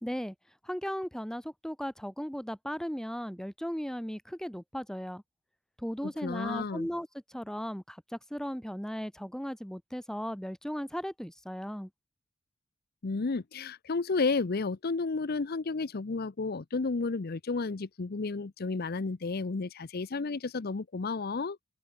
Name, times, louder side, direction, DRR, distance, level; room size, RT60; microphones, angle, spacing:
voice 1, 0.0-0.3 0.6-5.2 5.8-11.9, equal, 5° left, 1.4 m, -36 dB
voice 2, 6.0-6.9 13.0-21.6, left 4 dB, 50° left, 0.6 m, -32 dB
open air
head